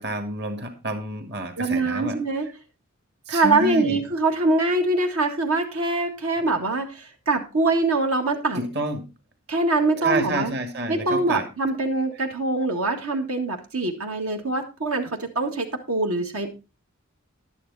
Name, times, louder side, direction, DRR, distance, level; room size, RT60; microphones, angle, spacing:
voice 1, 0.0-2.2 3.3-4.0 8.6-9.1 10.0-11.4, right 1 dB, 50° right, 6 dB, 2.0 m, -29 dB
voice 2, 1.6-2.5 3.3-8.6 9.5-10.5 10.9-16.5, right 2 dB, 75° right, 3 dB, 1.9 m, -24 dB
11.5 x 9.9 x 4.1 m, 0.28 s
head